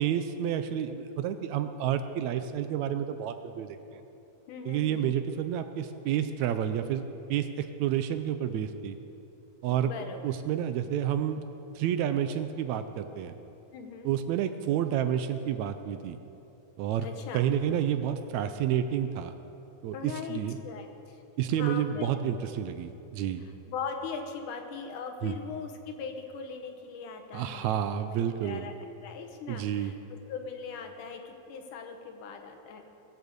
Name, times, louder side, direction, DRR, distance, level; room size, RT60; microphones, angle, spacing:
voice 1, 0.0-4.0 4.7-9.0 9.6-9.9 10.2-11.4 11.8-13.4 14.1-16.2 16.8-17.1 17.3-19.3 19.8-20.6 21.4-23.5 25.2-25.3 27.3-28.7 29.5-29.9, right 10 dB, 75° right, 9 dB, 1.8 m, -30 dB
voice 2, 4.5-5.2 9.7-10.2 13.7-14.1 17.0-17.4 19.9-21.2 21.5-22.2 23.7-28.7 29.0-30.0 30.3-32.8, left 5 dB, 85° left, 5 dB, 2.7 m, -40 dB
20.0 x 6.8 x 8.0 m, 2.9 s
omnidirectional pair, 3.5 m